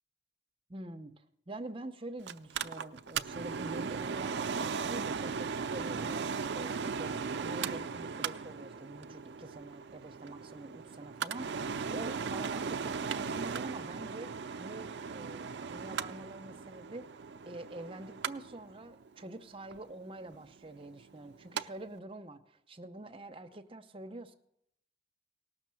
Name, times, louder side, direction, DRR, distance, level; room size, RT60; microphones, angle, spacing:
voice 1, 0.7-1.1 1.5-14.3 14.6-17.0 17.5-24.3, right 2 dB, 30° right, 6 dB, 0.7 m, -46 dB
Mechanical fan, 2.3-21.6 22.0-22.1, right 5 dB, 65° right, 0.4 m, -37 dB
18.0 x 6.4 x 7.6 m, 0.78 s
head